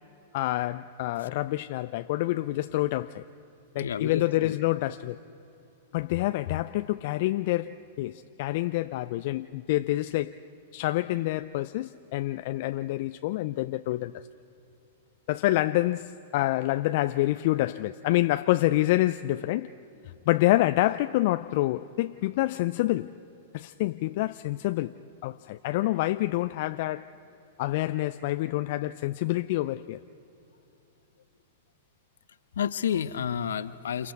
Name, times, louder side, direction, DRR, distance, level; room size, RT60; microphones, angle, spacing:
voice 1, 0.3-3.2 3.7-5.2 5.9-10.4 10.7-14.2 15.3-19.7 20.3-23.1 23.5-24.9 25.2-27.1 27.6-30.0, left 17 dB, 55° left, 0.5 m, -27 dB
voice 2, 3.7-4.5 32.6-34.1, left 8 dB, 75° left, 0.9 m, -30 dB
29.5 x 28.0 x 4.7 m
hypercardioid pair, 105°, 0 cm